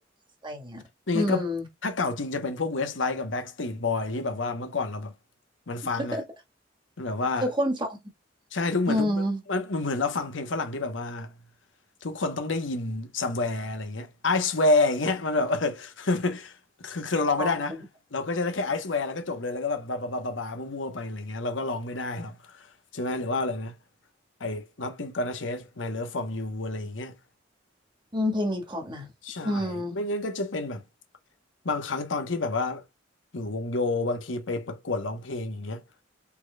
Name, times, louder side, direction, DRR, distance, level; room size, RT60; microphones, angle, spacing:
voice 1, 0.4-0.8 1.1-1.7 6.0-6.2 7.4-7.9 8.9-9.4 17.4-17.8 28.1-29.1 29.4-30.0, left 1 dB, 25° right, 1.6 m, -28 dB
voice 2, 1.1-1.5 1.8-5.1 5.7-6.2 7.0-7.5 8.5-9.2 9.5-11.3 12.0-16.6 16.8-17.8 18.1-22.7 22.9-23.7 24.4-27.2 29.2-30.8 31.6-32.8 33.3-35.8, left 3 dB, 85° left, 1.0 m, -29 dB
5.8 x 4.0 x 2.3 m
head